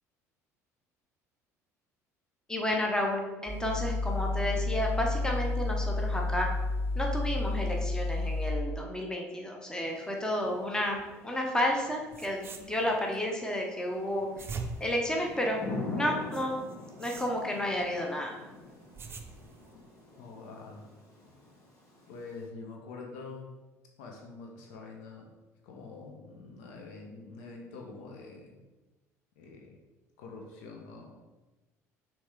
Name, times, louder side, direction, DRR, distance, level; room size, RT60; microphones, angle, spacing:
voice 1, 2.5-6.5 6.9-14.3 14.8-15.6 16.0-16.6 17.0-18.3, left 1 dB, 10° left, 0 dB, 1.1 m, -31 dB
sound 1, 3.5-8.5, left 2 dB, 25° left, 1.9 m, -31 dB
Thunder / Rain, 9.7-22.5, left 2 dB, 40° left, 1.8 m, -45 dB
sound 2, 11.8-11.9 12.1-13.2 14.1-15.8 16.3-17.9 18.6-19.7, right 4 dB, 30° right, 0.6 m, -43 dB
voice 2, 20.2-20.9 22.1-23.6 24.0-25.3 25.6-28.6 29.4-29.8 30.2-31.2, left 3 dB, 60° left, 1 dB, 1.0 m, -45 dB
6.2 x 3.4 x 4.6 m, 1.1 s
figure-of-eight pair, 60°, 8 cm